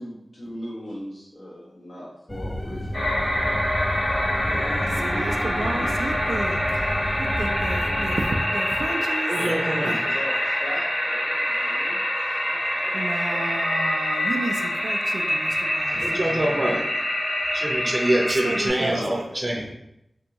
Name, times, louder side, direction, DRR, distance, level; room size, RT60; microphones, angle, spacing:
voice 1, 0.0-3.2 4.5-6.1 9.3-12.0 12.4-13.0 13.3-13.6 15.9-16.6 18.8-19.7, equal, 80° left, -7 dB, 1.2 m, -38 dB
sound 1, 2.3-8.3, left 1 dB, 20° left, 0.4 m, -31 dB
sound 2, 2.9-18.7, equal, 45° left, 1.3 m, -25 dB
voice 2, 4.4-9.4 9.6-10.1 11.5-11.7 12.3-12.5 12.9-16.2 18.3-19.2, right 2 dB, 90° right, 4 dB, 0.3 m, -33 dB
voice 3, 9.3-10.0 16.0-17.1 17.5-19.6, right 1 dB, 35° right, 1 dB, 0.5 m, -25 dB
3.4 x 2.6 x 2.9 m, 0.81 s
wide cardioid pair, 55°, 0 cm